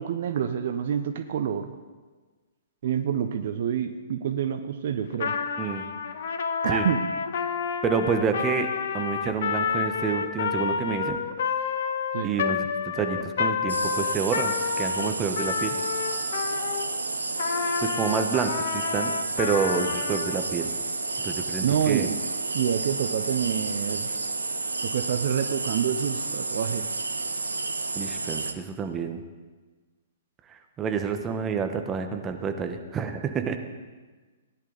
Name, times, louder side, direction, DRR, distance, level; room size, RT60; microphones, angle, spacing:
voice 1, 0.0-1.7 2.8-5.3 6.6-7.0 12.1-12.4 21.6-22.2 22.5-24.1 24.8-26.9, right 8 dB, 55° right, 9 dB, 0.7 m, -27 dB
Trumpet, 5.1-16.9 17.4-20.4, left 6 dB, 55° left, 1.0 m, -29 dB
voice 2, 7.8-8.7 8.9-11.2 12.2-15.8 17.8-19.1 19.4-20.7 21.2-22.1 27.9-29.2 30.5-33.6, right 6 dB, 20° right, 6 dB, 1.1 m, -28 dB
sound 1, 13.7-28.5, right 3 dB, 80° right, 0.9 m, -31 dB
17.0 x 10.5 x 4.0 m, 1.3 s
figure-of-eight pair, 115°, 0 cm